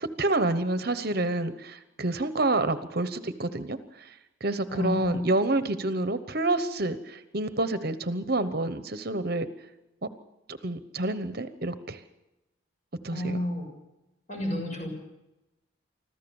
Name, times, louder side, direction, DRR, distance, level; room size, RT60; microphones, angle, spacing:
voice 1, 0.0-4.1 4.4-9.5 10.5-12.0 13.0-13.4, right 2 dB, 50° right, 11 dB, 1.0 m, -28 dB
voice 2, 4.7-5.2 13.1-13.6 14.3-14.9, left 1 dB, 35° left, 3 dB, 6.7 m, -30 dB
25.5 x 14.5 x 7.1 m, 0.93 s
head